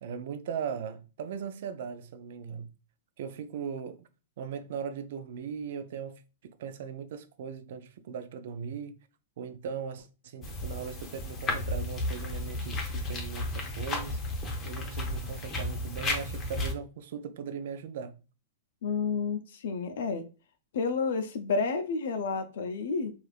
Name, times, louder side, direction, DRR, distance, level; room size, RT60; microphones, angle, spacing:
voice 1, 0.0-2.7 3.2-4.1 4.4-9.0 9.4-14.2 14.6-18.1, right 7 dB, 65° right, 0.4 m, -39 dB
sound 1, 10.4-16.7, left 2 dB, 20° left, 0.6 m, -33 dB
voice 2, 18.8-20.2 20.7-23.1, left 4 dB, 75° left, 0.4 m, -30 dB
3.3 x 2.4 x 2.3 m
hypercardioid pair, 140°, 0 cm